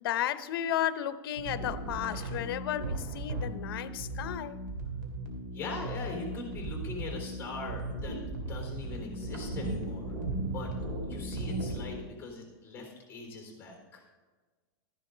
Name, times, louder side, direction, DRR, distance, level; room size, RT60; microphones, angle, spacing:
voice 1, 0.0-4.6, left 11 dB, 65° left, 14 dB, 0.7 m, -33 dB
sound 1, 1.4-12.0, right 2 dB, 50° right, 3.0 m, -36 dB
voice 2, 5.5-8.2 8.4-10.1 10.5-10.7 11.0-14.0, left 3 dB, 15° left, 1 dB, 3.7 m, -41 dB
13.5 x 10.5 x 3.9 m, 1.4 s
supercardioid pair, 155°, 13 cm